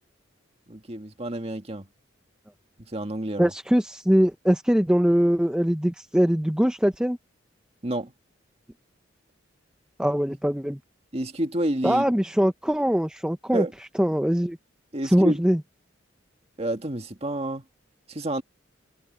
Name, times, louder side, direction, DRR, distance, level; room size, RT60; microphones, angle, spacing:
voice 1, 0.7-1.9 2.9-3.5 7.8-8.1 11.1-12.1 13.5-13.7 14.9-15.4 16.6-17.6 18.1-18.4, right 1 dB, 30° right, 1.9 m, -29 dB
voice 2, 3.4-7.2 10.0-10.8 11.8-13.7 14.0-14.6 15.0-15.6, equal, 5° right, 0.7 m, -22 dB
head